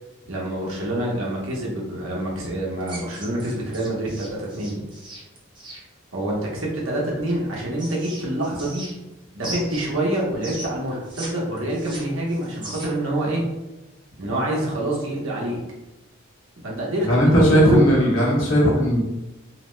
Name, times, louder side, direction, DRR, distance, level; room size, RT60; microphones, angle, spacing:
voice 1, 0.3-4.8 6.1-8.9 9.3-13.5 14.2-15.6 16.6-17.8, right 1 dB, 75° right, -3 dB, 0.8 m, -26 dB
sound 1, 2.9-5.8 7.3-9.1 9.4-11.3 11.6-13.1, right 2 dB, 25° right, 0.6 m, -38 dB
voice 2, 17.0-19.0, equal, 70° left, -5 dB, 1.0 m, -17 dB
2.7 x 2.1 x 3.1 m, 1.0 s
head